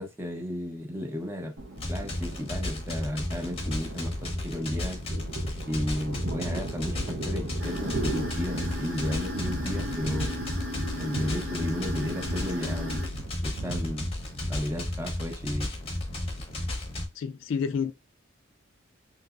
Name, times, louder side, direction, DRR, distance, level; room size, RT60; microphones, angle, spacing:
voice 1, 0.0-1.5 1.9-5.0 5.7-10.3 11.0-13.1 13.4-14.1 14.5-15.7, equal, 10° right, 0.7 m, -34 dB
Thunder, 1.6-16.4, right 2 dB, 65° right, 0.6 m, -39 dB
sound 1, 1.8-17.1, left 1 dB, 30° left, 0.8 m, -33 dB
sound 2, 7.6-13.1, left 1 dB, 80° right, 1.6 m, -36 dB
voice 2, 17.2-17.9, left 6 dB, 70° left, 0.3 m, -29 dB
3.2 x 2.9 x 2.4 m
head